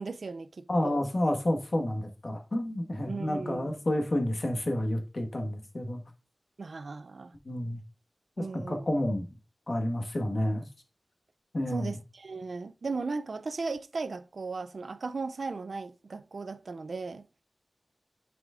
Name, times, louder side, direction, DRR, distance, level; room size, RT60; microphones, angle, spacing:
voice 1, 0.0-1.0 3.0-3.7 6.6-7.3 8.4-8.9 11.7-17.3, right 4 dB, 75° right, 0.4 m, -36 dB
voice 2, 0.7-6.0 7.4-7.8 8.4-9.3 9.7-10.7 11.5-12.0, left 1 dB, 50° left, 1.4 m, -30 dB
10.0 x 4.9 x 2.5 m
wide cardioid pair, 90°, 0 cm